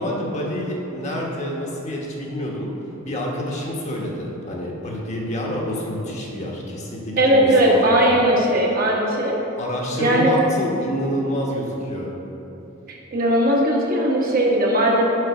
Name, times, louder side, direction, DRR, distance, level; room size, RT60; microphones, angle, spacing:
voice 1, 0.0-2.7 3.0-8.2 9.6-12.1, equal, 35° left, -2 dB, 1.0 m, -28 dB
voice 2, 7.2-9.3 10.0-10.3 12.9-15.1, right 1 dB, 45° right, -2 dB, 1.1 m, -18 dB
6.6 x 5.2 x 6.1 m, 3.0 s
head